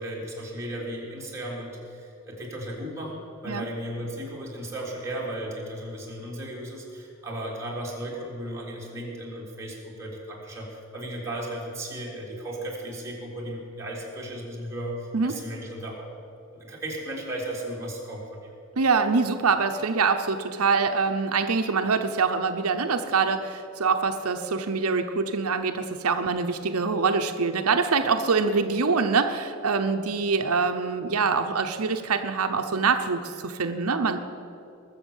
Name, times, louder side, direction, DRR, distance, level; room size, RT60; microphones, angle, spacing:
voice 1, 0.0-16.1 16.5-18.4, right 1 dB, 15° right, -4 dB, 3.3 m, -35 dB
voice 2, 18.8-34.2, right 4 dB, 90° right, 7 dB, 0.8 m, -24 dB
20.5 x 7.1 x 7.2 m, 2.7 s
head